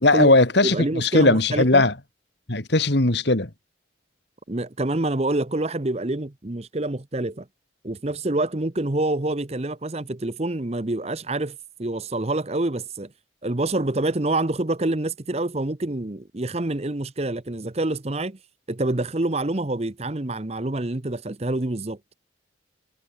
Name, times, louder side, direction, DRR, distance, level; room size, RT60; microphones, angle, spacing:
voice 1, 0.0-1.9 2.5-3.5, left 2 dB, 60° left, 2.5 m, -18 dB
voice 2, 0.6-1.9 4.5-7.5 7.8-13.1 13.4-18.4 18.7-22.0, right 2 dB, 30° right, 0.9 m, -26 dB
head